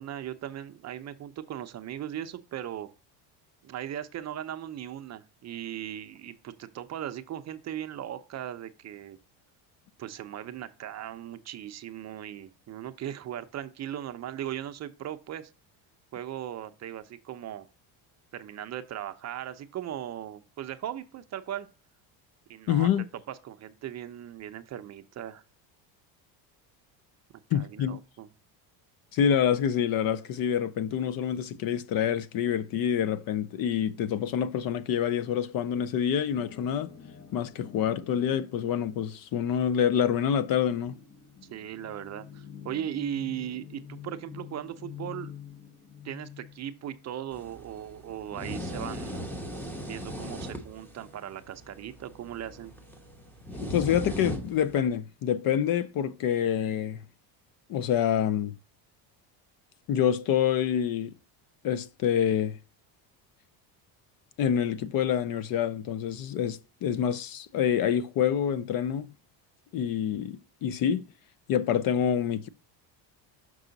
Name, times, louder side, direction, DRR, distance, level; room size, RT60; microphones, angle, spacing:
voice 1, 0.0-2.9 3.6-9.2 10.0-15.5 16.1-17.7 18.3-21.7 22.5-22.9 23.3-25.4 27.5-28.3 41.5-45.3 46.0-49.3 49.8-52.7, right 11 dB, 35° right, 0.6 m, -38 dB
voice 2, 22.7-23.1 27.5-28.0 29.1-36.9 37.3-41.0 53.5-57.0 57.7-58.6 59.9-61.1 61.6-62.6 64.4-69.1 69.7-71.0 71.5-72.5, left 9 dB, 50° left, 0.5 m, -27 dB
sound 1, 36.3-53.3, left 8 dB, 30° left, 0.9 m, -49 dB
sound 2, 47.3-54.8, equal, 5° left, 0.9 m, -39 dB
6.1 x 5.5 x 3.9 m
cardioid pair, 125°, 47 cm